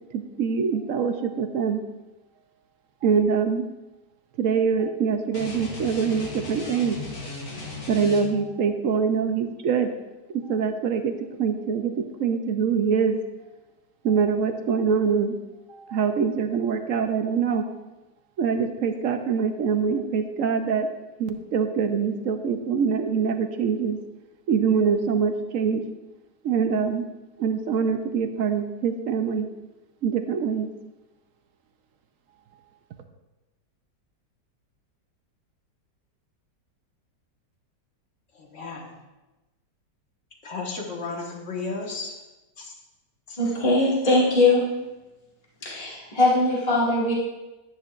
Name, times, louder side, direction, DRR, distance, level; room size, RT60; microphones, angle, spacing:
voice 1, 0.1-1.8 3.0-3.6 4.4-7.0 7.9-9.9 10.3-11.1 11.4-13.2 14.0-15.4 15.7-17.7 18.4-20.9 21.2-24.0 24.5-25.8 26.4-27.0 27.4-29.5 30.0-30.7, right 6 dB, 65° right, 7 dB, 0.9 m, -24 dB
sound 1, 5.3-8.6, left 2 dB, 85° left, 2.2 m, -37 dB
voice 2, 38.3-38.9 40.4-42.2 42.6-42.8 43.3-43.4, left 3 dB, 45° left, 0 dB, 1.7 m, -34 dB
voice 3, 43.4-44.6 45.6-47.1, left 2 dB, 20° left, -7 dB, 2.1 m, -21 dB
12.0 x 10.0 x 2.5 m, 1.1 s
omnidirectional pair, 1.9 m